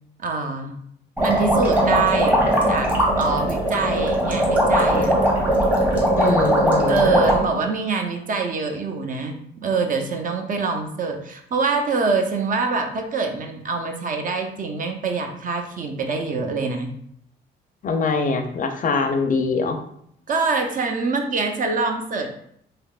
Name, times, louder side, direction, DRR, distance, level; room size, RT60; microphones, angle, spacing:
voice 1, 0.2-0.8 1.2-2.9 3.2-5.1 6.9-16.9 20.3-22.3, right 4 dB, 45° right, 4 dB, 0.5 m, -25 dB
sound 1, 1.2-7.4, right 1 dB, 10° right, 0.9 m, -19 dB
voice 2, 6.2-7.1 17.8-19.8, left 4 dB, 40° left, 6 dB, 0.4 m, -23 dB
3.3 x 2.9 x 2.3 m, 0.69 s
cardioid pair, 90°, 20 cm